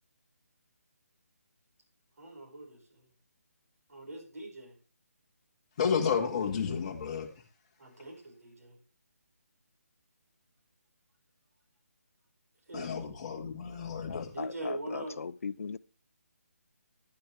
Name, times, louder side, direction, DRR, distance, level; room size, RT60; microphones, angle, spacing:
voice 1, 2.2-3.0 3.9-4.7 7.8-8.8 12.7-13.0 14.3-15.2, right 1 dB, 75° right, 5.7 m, -42 dB
voice 2, 5.8-7.3 12.7-14.3, left 6 dB, 25° left, 1.8 m, -31 dB
voice 3, 14.1-15.8, left 5 dB, 60° left, 0.6 m, -39 dB
11.0 x 10.5 x 3.4 m
hypercardioid pair, 170°, 8 cm